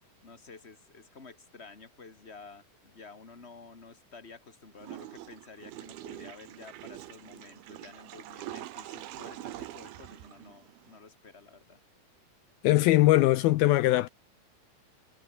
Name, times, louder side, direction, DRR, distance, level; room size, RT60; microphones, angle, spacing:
voice 1, 0.2-11.8, left 4 dB, 20° left, 2.0 m, -51 dB
Water / Toilet flush, 4.8-11.0, right 14 dB, 70° right, 2.8 m, -44 dB
voice 2, 12.6-14.1, left 17 dB, 80° left, 2.2 m, -21 dB
omnidirectional pair, 5.0 m